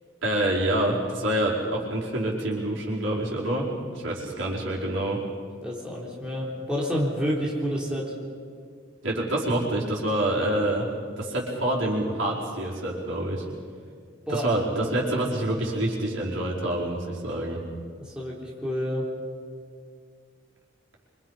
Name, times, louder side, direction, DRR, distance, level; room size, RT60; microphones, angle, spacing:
voice 1, 0.2-3.7 3.9-5.2 9.0-10.9 11.2-13.4 14.3-17.6, right 1 dB, 80° right, -4 dB, 5.0 m, -27 dB
voice 2, 5.6-8.1 14.3-14.5 18.0-19.1, equal, 5° right, -5 dB, 3.9 m, -29 dB
26.0 x 25.5 x 5.7 m, 2.1 s
head